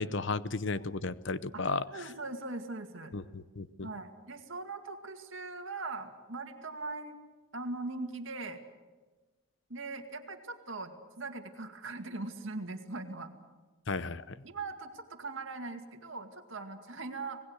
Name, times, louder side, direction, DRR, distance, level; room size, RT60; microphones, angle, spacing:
voice 1, 0.0-1.8 3.1-3.9 13.9-14.3, left 3 dB, 55° left, 16 dB, 0.8 m, -34 dB
voice 2, 1.5-3.1 3.8-7.2 7.5-8.6 9.7-13.3 14.4-17.4, right 3 dB, 60° right, 6 dB, 2.2 m, -40 dB
26.5 x 19.5 x 8.2 m, 1.3 s
head